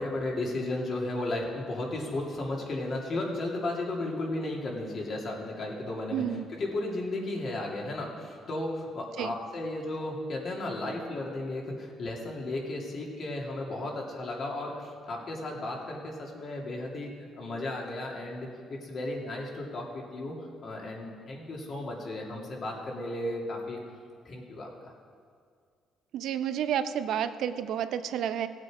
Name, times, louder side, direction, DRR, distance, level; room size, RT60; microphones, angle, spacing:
voice 1, 0.0-6.2 6.5-23.8 24.2-24.9, left 2 dB, 50° left, -1 dB, 2.5 m, -34 dB
voice 2, 6.1-6.5 9.2-9.3 26.1-28.5, right 9 dB, 75° right, 10 dB, 0.6 m, -30 dB
16.5 x 7.5 x 4.8 m, 2.1 s
cardioid pair, 90°, 0 cm